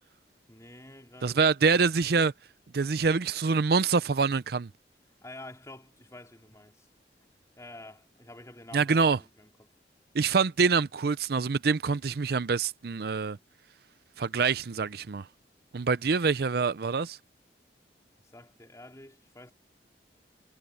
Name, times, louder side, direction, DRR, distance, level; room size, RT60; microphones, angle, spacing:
voice 1, 0.5-1.4 5.2-6.9 7.6-9.7 15.8-16.0 18.2-19.5, left 1 dB, 20° left, 3.7 m, -49 dB
voice 2, 1.2-2.3 2.7-4.7 8.7-9.2 10.1-13.4 14.2-15.2 15.7-17.2, right 5 dB, 60° right, 0.5 m, -25 dB
head